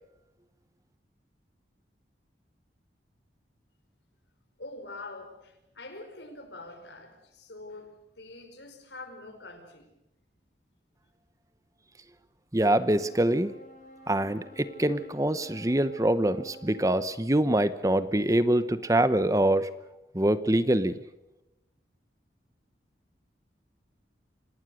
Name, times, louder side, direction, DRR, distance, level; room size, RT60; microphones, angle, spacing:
voice 1, 4.6-9.9, left 2 dB, 75° left, 6 dB, 5.2 m, -45 dB
voice 2, 12.5-13.5 14.1-19.7 20.1-21.0, right 1 dB, 20° right, 14 dB, 0.8 m, -24 dB
sound 1, 12.7-17.2, equal, 45° left, 3.9 m, -51 dB
26.5 x 19.0 x 6.4 m, 0.91 s
head